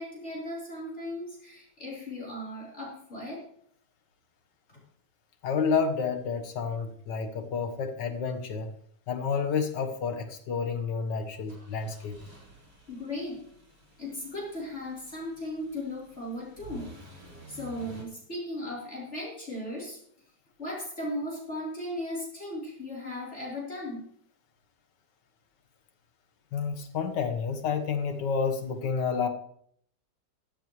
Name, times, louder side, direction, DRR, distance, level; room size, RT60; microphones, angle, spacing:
voice 1, 0.0-3.4 12.9-13.4 14.0-16.9 17.5-20.0 20.6-24.1, left 1 dB, 40° left, -5 dB, 4.3 m, -37 dB
voice 2, 5.4-8.7 9.1-12.2 26.5-29.3, left 5 dB, 80° left, 7 dB, 1.9 m, -30 dB
sound 1, 11.5-18.0, right 1 dB, 65° right, 5.0 m, -50 dB
14.5 x 14.0 x 3.1 m, 0.65 s
omnidirectional pair, 1.8 m